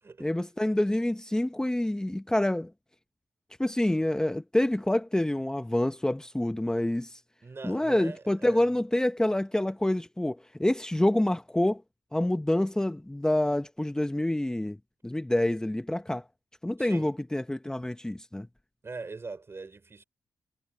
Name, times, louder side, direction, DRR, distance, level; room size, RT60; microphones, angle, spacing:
voice 1, 0.2-2.7 3.6-7.2 7.6-11.8 12.1-14.8 15.0-16.2 16.6-18.5, left 1 dB, 10° left, 0.9 m, -27 dB
voice 2, 7.4-8.7 16.8-17.1 18.8-20.0, right 4 dB, 40° right, 4.8 m, -42 dB
cardioid pair, 60°, 7 cm